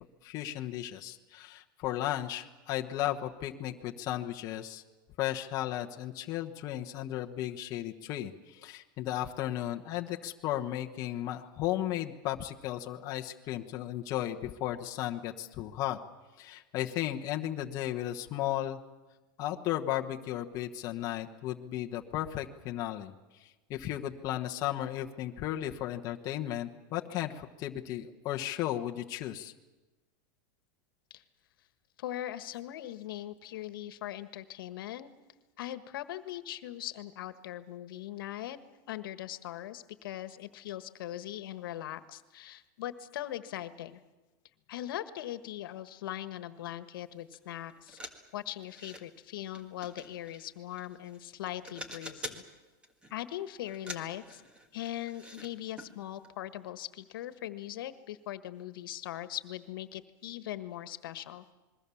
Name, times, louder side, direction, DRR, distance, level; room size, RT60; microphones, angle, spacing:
voice 1, 0.2-4.8 5.2-16.0 16.4-18.8 19.4-23.1 23.4-29.5, left 13 dB, 30° left, 2 dB, 1.1 m, -35 dB
voice 2, 32.0-35.1 35.6-38.6 38.9-44.0 44.7-48.0 48.3-52.4 53.1-54.4 54.7-61.5, left 13 dB, 80° left, 12 dB, 1.5 m, -40 dB
sound 1, 47.3-47.4 47.7-49.0 49.5-51.2 51.5-52.5 52.8-53.2 53.7-55.5 55.8-55.9 56.2-56.3, equal, 10° right, 1.7 m, -46 dB
27.5 x 21.5 x 7.1 m, 1.2 s
supercardioid pair, 170°, 11 cm